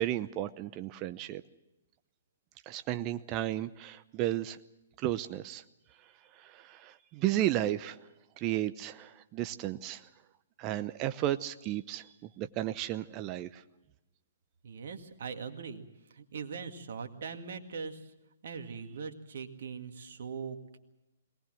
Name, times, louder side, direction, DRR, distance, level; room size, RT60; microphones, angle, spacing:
voice 1, 0.0-1.4 2.7-4.6 5.0-5.6 6.5-8.0 8.4-10.0 10.6-12.0 12.4-13.5, right 13 dB, 30° right, 12 dB, 0.7 m, -33 dB
voice 2, 14.6-15.8 16.1-18.1 18.4-20.8, right 5 dB, 60° right, 6 dB, 2.1 m, -41 dB
22.5 x 19.0 x 7.7 m, 0.94 s
figure-of-eight pair, 125°, 0 cm